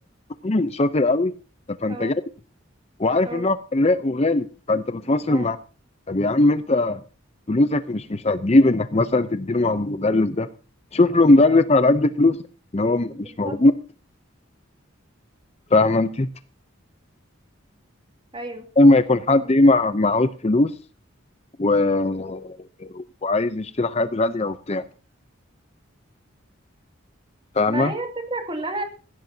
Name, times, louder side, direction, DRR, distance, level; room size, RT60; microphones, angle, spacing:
voice 1, 0.4-1.3 1.8-2.1 3.0-5.6 6.1-7.0 7.5-10.5 10.9-12.4 12.7-13.7 15.7-16.3 18.8-20.7 21.6-24.8 27.6-27.9, left 2 dB, 30° left, 12 dB, 0.6 m, -20 dB
voice 2, 13.2-13.6 18.3-18.7 19.3-19.4 27.7-28.8, right 2 dB, 25° right, 5 dB, 2.5 m, -32 dB
18.0 x 16.0 x 2.8 m, 0.35 s
head